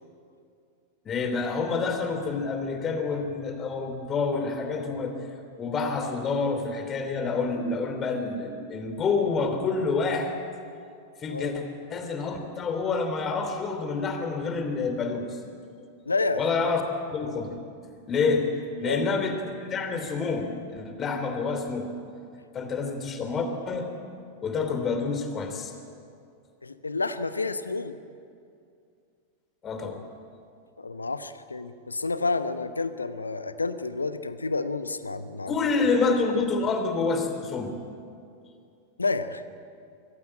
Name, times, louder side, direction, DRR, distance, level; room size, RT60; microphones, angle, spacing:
voice 1, 1.0-5.1 5.6-10.4 11.2-11.6 11.9-15.4 16.4-16.8 17.1-17.5 18.1-18.5 18.8-21.9 22.5-23.9 24.4-25.7 29.6-30.0 35.5-37.7, left 4 dB, 25° left, 6 dB, 3.1 m, -28 dB
voice 2, 16.1-16.4 18.8-19.0 26.6-28.0 30.8-35.5 39.0-39.4, left 3 dB, 80° left, 12 dB, 1.0 m, -29 dB
24.5 x 15.5 x 8.9 m, 2.4 s
figure-of-eight pair, 90°, 0 cm